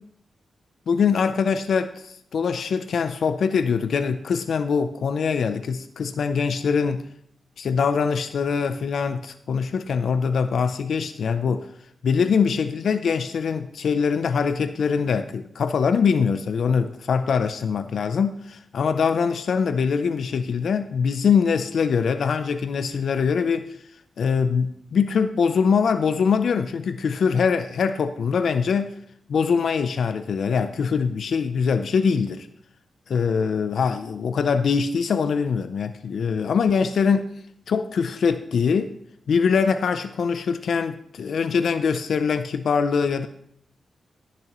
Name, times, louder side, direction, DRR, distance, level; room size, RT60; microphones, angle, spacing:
voice 1, 0.9-7.1 7.6-11.7 12.0-23.7 24.2-29.0 29.3-32.5 33.1-37.3 37.7-38.9 39.3-43.3, left 6 dB, 75° left, 10 dB, 0.5 m, -23 dB
20.5 x 6.9 x 3.0 m, 0.69 s
cardioid pair, 65°, 0 cm